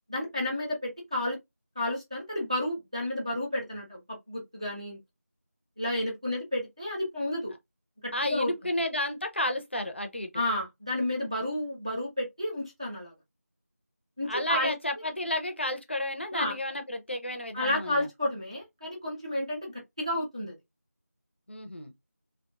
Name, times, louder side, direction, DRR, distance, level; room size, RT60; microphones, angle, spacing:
voice 1, 0.1-1.4 1.8-4.0 4.3-5.0 5.8-7.5 8.2-8.5 10.3-13.1 14.2-14.7 16.3-16.5 17.5-19.7 20.0-20.5, left 1 dB, 20° right, 0.5 m, -31 dB
voice 2, 8.1-10.4 14.3-18.1 21.5-21.9, left 1 dB, 45° left, 0.5 m, -32 dB
2.5 x 2.2 x 2.3 m
figure-of-eight pair, 175°, 9 cm